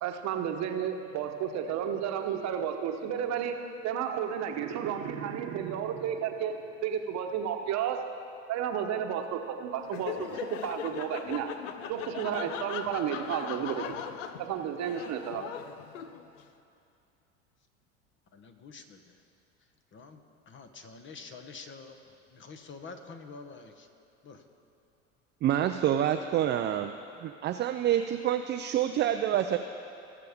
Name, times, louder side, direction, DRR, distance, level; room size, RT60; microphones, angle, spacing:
voice 1, 0.0-8.0 8.5-11.5 11.9-14.0 14.4-15.5, right 8 dB, 45° right, 5 dB, 1.1 m, -32 dB
Laughter, 9.8-16.4, left 9 dB, 80° left, 0.7 m, -39 dB
voice 2, 18.3-19.1 19.9-20.2 20.5-23.9 24.2-24.4, left 4 dB, 30° left, 7 dB, 1.0 m, -47 dB
voice 3, 25.4-26.9 27.2-29.6, right 11 dB, 30° right, 6 dB, 0.4 m, -27 dB
19.5 x 6.6 x 3.6 m, 2.6 s
hypercardioid pair, 85°, 37 cm